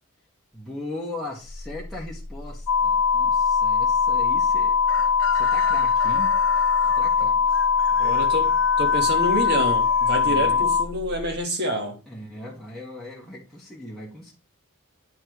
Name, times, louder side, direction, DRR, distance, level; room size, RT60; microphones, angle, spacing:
voice 1, 0.5-4.8 5.3-6.4 6.9-7.4 10.2-10.7 12.1-14.3, left 1 dB, ahead, 1.5 m, -38 dB
sound 1, 1.4-11.4, left 1 dB, 65° right, 0.7 m, -39 dB
sound 2, 2.7-10.8, left 6 dB, 85° left, 0.4 m, -21 dB
Chicken rooster, 4.8-10.8, left 6 dB, 60° left, 1.1 m, -38 dB
voice 2, 8.0-12.0, equal, 50° right, 1.5 m, -27 dB
9.5 x 4.3 x 3.1 m
head